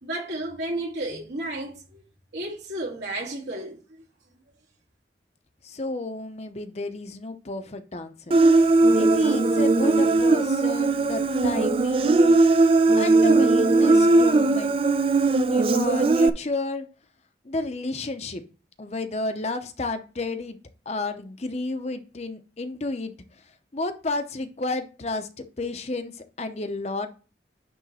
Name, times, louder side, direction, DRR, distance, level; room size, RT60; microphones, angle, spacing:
voice 1, 0.0-2.0 2.3-3.8, right 1 dB, 75° right, 2.8 m, -32 dB
voice 2, 5.6-8.1 8.9-12.3 13.0-14.7 15.2-16.8 17.4-18.4 18.8-20.6 20.9-23.1 23.7-27.1, left 2 dB, 35° left, 0.7 m, -31 dB
Human voice, 8.3-16.3, right 3 dB, 30° right, 0.4 m, -19 dB
10.0 x 3.4 x 4.1 m
head